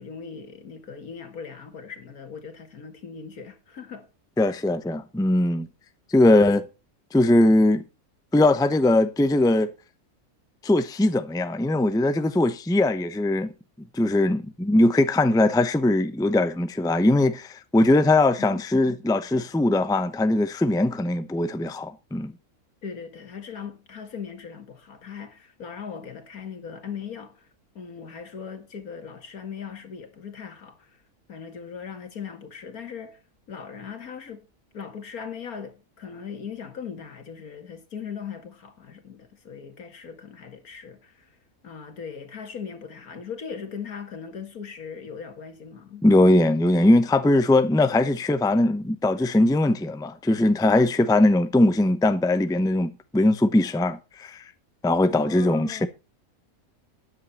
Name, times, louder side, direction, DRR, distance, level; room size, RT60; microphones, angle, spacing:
voice 1, 0.0-4.1 18.4-18.6 22.8-27.5 27.8-31.0 31.3-33.2 33.5-34.5 34.7-41.4 41.6-46.1 55.1-55.9, left 6 dB, 75° left, 2.4 m, -39 dB
voice 2, 4.4-5.7 6.1-6.7 7.1-7.8 8.3-9.7 10.6-13.5 13.9-22.3 46.0-54.4 54.8-55.9, left 2 dB, 5° left, 0.7 m, -20 dB
13.0 x 9.6 x 4.2 m
omnidirectional pair, 1.5 m